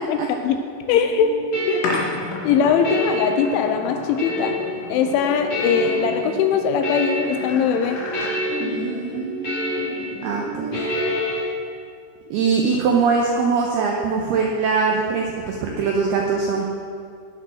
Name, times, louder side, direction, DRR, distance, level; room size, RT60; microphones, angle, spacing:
voice 1, 0.1-0.6 0.9-1.3 1.7-1.9 2.4-4.5 4.9-8.0, left 7 dB, 80° left, 6 dB, 2.8 m, -21 dB
sound 1, 0.9-11.4, left 1 dB, 35° left, 4.9 m, -28 dB
sound 2, 1.8-8.3, left 3 dB, 65° left, 4.0 m, -33 dB
voice 2, 8.6-10.8 12.3-16.6, right 5 dB, 85° right, 0 dB, 2.3 m, -22 dB
18.0 x 7.0 x 6.3 m, 2.3 s
omnidirectional pair, 5.8 m